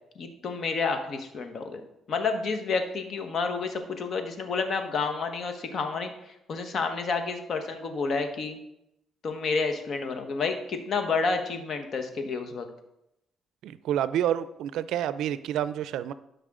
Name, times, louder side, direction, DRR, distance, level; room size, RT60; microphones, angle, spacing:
voice 1, 0.1-1.8 2.1-8.6 9.2-12.7, left 4 dB, 55° left, 6 dB, 1.3 m, -30 dB
voice 2, 13.6-16.1, right 10 dB, 85° right, 15 dB, 0.4 m, -28 dB
12.0 x 5.4 x 3.8 m, 0.83 s
cardioid pair, 90°, 0 cm